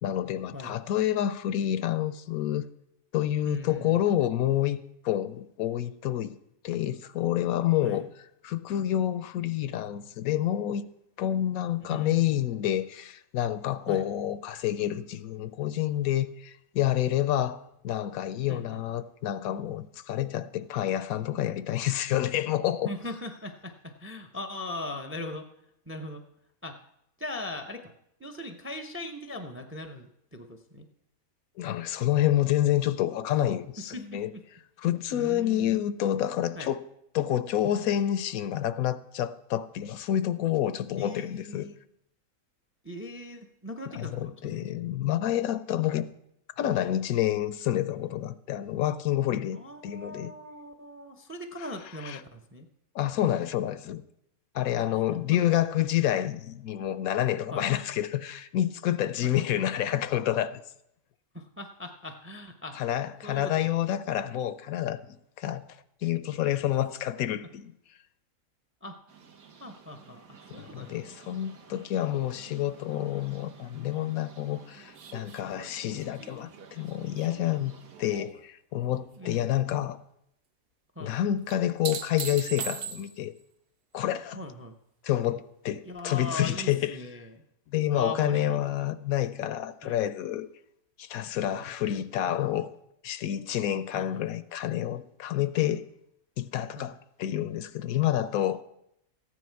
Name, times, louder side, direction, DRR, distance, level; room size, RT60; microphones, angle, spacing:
voice 1, 0.0-2.7 3.1-6.4 6.6-8.0 8.4-10.9 11.2-22.9 31.6-34.3 34.8-36.8 37.1-41.7 43.9-46.1 46.6-50.3 51.6-51.7 52.0-52.2 52.9-54.0 54.5-60.6 62.8-65.7 66.0-67.7 70.5-80.0 81.0-83.3 83.9-84.4 85.0-87.0 87.7-90.5 91.0-92.7 93.0-95.8 96.4-98.6, left 12 dB, 75° left, 1.0 m, -28 dB
voice 2, 3.4-4.0 7.8-8.1 11.9-12.4 13.9-14.0 17.3-17.5 18.5-18.8 22.8-25.5 25.9-26.2 26.6-26.8 27.2-27.9 28.2-30.9 33.8-34.4 35.1-35.9 36.5-36.7 41.0-41.8 42.8-44.8 49.5-52.7 55.1-55.4 57.5-57.9 59.2-59.5 61.3-62.8 63.2-63.6 68.8-69.0 69.6-70.9 79.2-79.7 81.0-81.2 84.3-84.7 85.8-87.4 87.9-88.6 89.8-90.0 91.5-91.6 94.0-94.2 96.8-96.9, left 1 dB, 15° right, 0.5 m, -40 dB
sound 1, 69.1-78.2, right 6 dB, 70° right, 1.6 m, -53 dB
sound 2, 75.0-78.4 78.8-79.4 81.5-83.4 86.0-86.1, right 7 dB, 55° right, 0.8 m, -40 dB
14.5 x 9.4 x 4.6 m
omnidirectional pair, 1.5 m